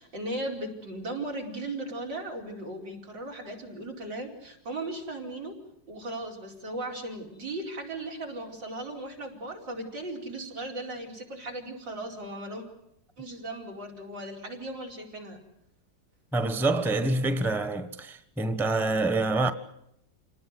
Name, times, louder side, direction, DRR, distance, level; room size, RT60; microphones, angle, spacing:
voice 1, 0.0-5.5 5.9-12.7 13.2-15.4, right 2 dB, 90° right, 5.4 m, -37 dB
voice 2, 16.3-19.5, right 2 dB, ahead, 1.0 m, -26 dB
28.5 x 19.0 x 8.1 m
omnidirectional pair, 1.9 m